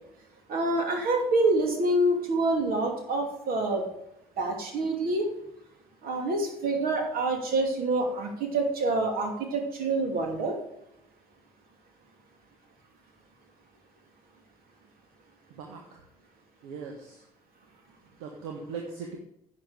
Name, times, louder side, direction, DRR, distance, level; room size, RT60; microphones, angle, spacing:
voice 1, 0.5-3.9 4.4-5.3 6.0-10.6, right 2 dB, 50° right, 2 dB, 2.7 m, -26 dB
voice 2, 15.5-16.0 16.6-17.3 18.2-19.2, right 5 dB, 65° right, 1 dB, 1.5 m, -39 dB
10.5 x 7.6 x 4.9 m, 0.81 s
figure-of-eight pair, 55°, 19 cm